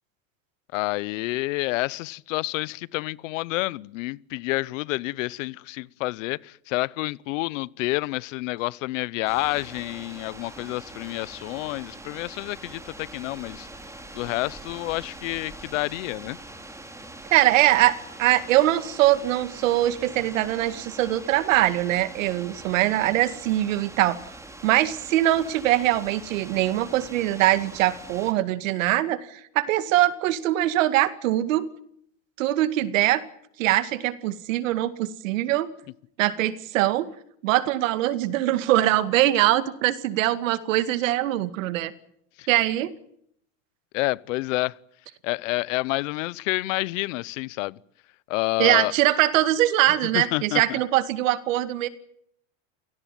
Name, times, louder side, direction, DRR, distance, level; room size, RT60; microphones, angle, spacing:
voice 1, 0.7-13.7 14.1-16.4 42.4-42.5 43.9-44.8 45.2-47.8 48.3-48.9 50.1-50.8, left 21 dB, 80° left, 1.0 m, -29 dB
sound 1, 9.2-28.3, right 2 dB, 10° right, 4.0 m, -43 dB
voice 2, 17.3-24.2 24.6-31.7 32.4-33.2 33.6-35.7 36.2-37.1 37.4-41.9 42.5-42.9 48.6-51.9, right 14 dB, 85° right, 2.1 m, -22 dB
29.5 x 17.5 x 9.3 m
supercardioid pair, 120°, 38 cm